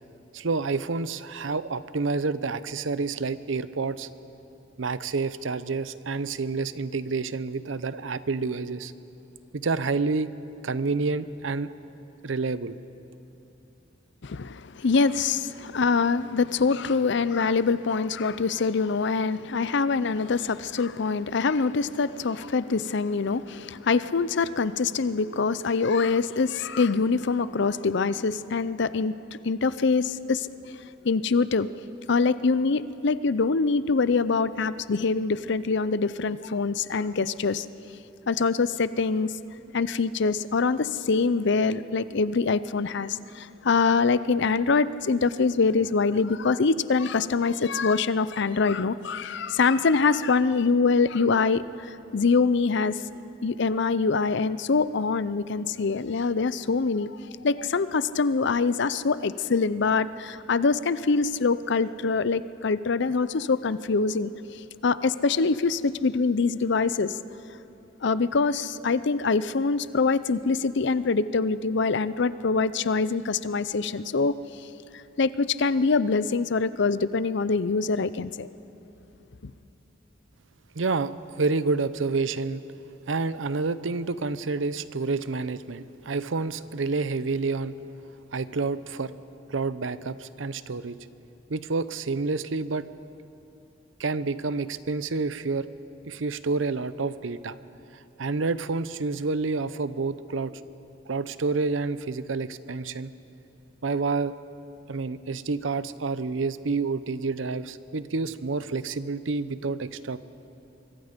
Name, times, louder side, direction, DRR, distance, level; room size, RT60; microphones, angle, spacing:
voice 1, 0.3-4.1 4.8-8.9 9.5-10.3 10.6-11.7 12.2-12.8 80.7-82.6 83.1-87.8 88.3-89.1 89.5-91.0 91.5-92.9 94.0-95.7 96.1-97.6 98.2-100.5 101.1-103.1 103.8-104.3 104.9-110.2, right 4 dB, 85° right, 14 dB, 0.7 m, -28 dB
voice 2, 14.2-30.5 31.0-31.7 32.1-37.7 38.3-39.3 39.7-53.0 53.4-57.2 57.4-64.3 64.8-67.2 68.0-74.3 75.2-78.5 79.4-79.5, left 4 dB, 65° left, 15 dB, 0.6 m, -24 dB
24.5 x 23.0 x 5.2 m, 2.9 s
head